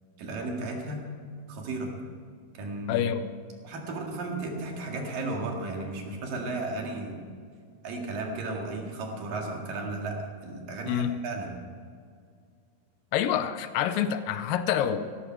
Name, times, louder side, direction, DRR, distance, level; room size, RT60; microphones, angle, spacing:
voice 1, 0.2-1.1 1.5-1.9 2.5-3.0 3.6-7.2 7.8-11.5, right 2 dB, 65° right, 1 dB, 3.7 m, -34 dB
voice 2, 2.9-3.3 10.9-11.2 13.1-15.1, left 9 dB, 80° left, 11 dB, 2.1 m, -27 dB
16.5 x 14.0 x 4.6 m, 2.1 s
omnidirectional pair, 4.5 m